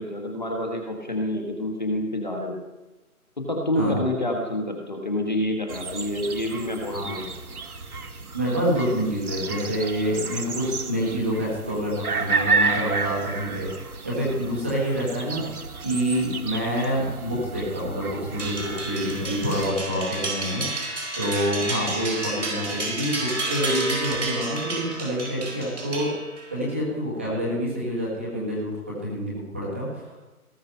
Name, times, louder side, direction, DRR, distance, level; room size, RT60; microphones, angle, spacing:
voice 1, 0.0-2.6 3.4-7.3, left 1 dB, 30° left, 2 dB, 1.3 m, -28 dB
sound 1, 5.7-19.7, right 4 dB, 75° right, 1.4 m, -31 dB
voice 2, 8.3-15.4 15.8-26.1 26.5-30.2, equal, 10° right, -6 dB, 1.6 m, -27 dB
sound 2, 18.4-26.6, right 2 dB, 50° right, 4.8 m, -30 dB
18.5 x 6.9 x 5.6 m, 1.1 s
figure-of-eight pair, 175°, 44 cm